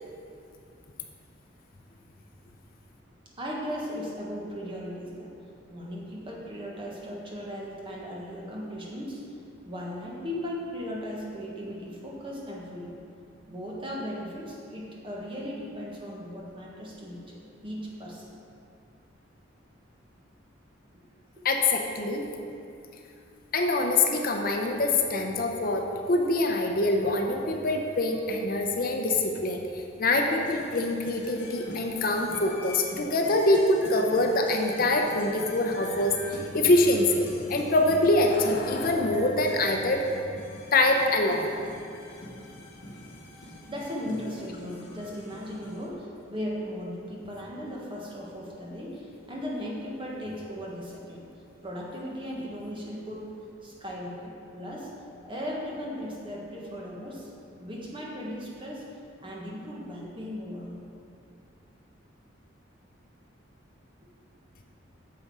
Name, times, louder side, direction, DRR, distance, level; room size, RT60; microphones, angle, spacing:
voice 1, 3.4-5.3 5.7-9.2 9.6-13.0 13.5-18.4 20.9-21.0 21.3-21.4 43.4-51.2 51.6-53.3 53.6-54.9 55.2-57.3 57.6-58.8 59.2-60.8, equal, 25° right, -4 dB, 1.5 m, -37 dB
voice 2, 21.4-22.3 23.5-40.0 40.7-41.5, left 2 dB, 50° left, 3 dB, 0.7 m, -24 dB
sound 1, 30.3-45.9, left 1 dB, 70° left, 1.6 m, -43 dB
9.4 x 6.7 x 4.8 m, 2.5 s
head